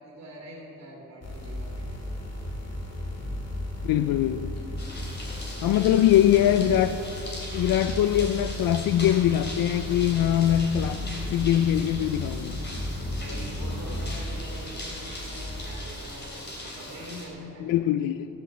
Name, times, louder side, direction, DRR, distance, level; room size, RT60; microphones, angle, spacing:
voice 1, 0.0-2.3 5.4-6.4 13.1-16.3 16.6-17.7, right 1 dB, 50° right, 2.7 m, -44 dB
sound 1, 1.2-15.9, left 1 dB, 50° left, 2.2 m, -35 dB
voice 2, 3.8-4.6 5.6-7.0 7.5-11.0 11.3-12.6 17.6-18.3, left 11 dB, 85° left, 0.5 m, -22 dB
sound 2, 4.8-17.3, left 1 dB, 30° left, 3.1 m, -40 dB
14.5 x 7.7 x 7.2 m
wide cardioid pair, 160°, 33 cm